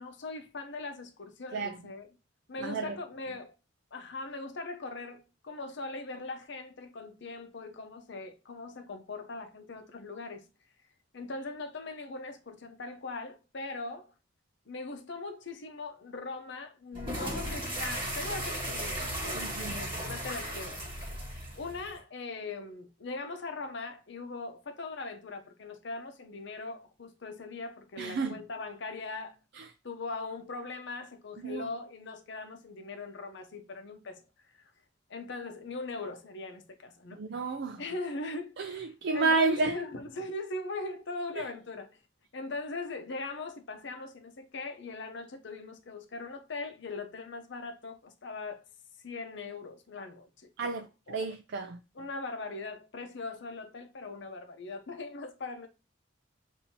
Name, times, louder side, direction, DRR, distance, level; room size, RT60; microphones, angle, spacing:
voice 1, 0.0-2.1 2.5-3.5 3.9-10.4 11.1-14.1 14.7-20.9 21.6-29.4 29.8-34.2 34.6-34.7 35.1-37.2 37.8-38.9 39.1-42.0 42.3-48.7 49.0-51.2 51.9-55.7, left 3 dB, 65° left, 0.7 m, -40 dB
voice 2, 2.6-3.0 19.3-19.8 28.0-28.4 29.5-29.6 31.4-31.7 37.1-37.8 38.6-39.8 41.4-41.5 50.6-51.8, right 3 dB, 65° right, 0.4 m, -31 dB
sound 1, 16.9-22.0, equal, 25° right, 1.8 m, -36 dB
7.0 x 2.7 x 2.8 m
head